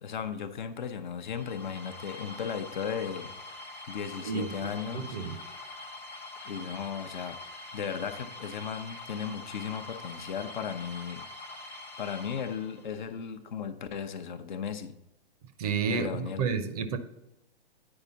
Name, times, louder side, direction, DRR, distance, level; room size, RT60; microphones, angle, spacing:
voice 1, 0.0-3.3 3.9-5.2 6.4-7.4 7.7-11.2 12.0-14.9 15.9-16.5, left 7 dB, 50° left, 0.7 m, -36 dB
sound 1, 1.2-13.0, left 2 dB, 5° left, 0.6 m, -44 dB
voice 2, 4.9-5.4 15.6-16.1 16.4-17.0, right 6 dB, 40° right, 0.7 m, -30 dB
9.7 x 4.9 x 3.9 m
figure-of-eight pair, 115°, 31 cm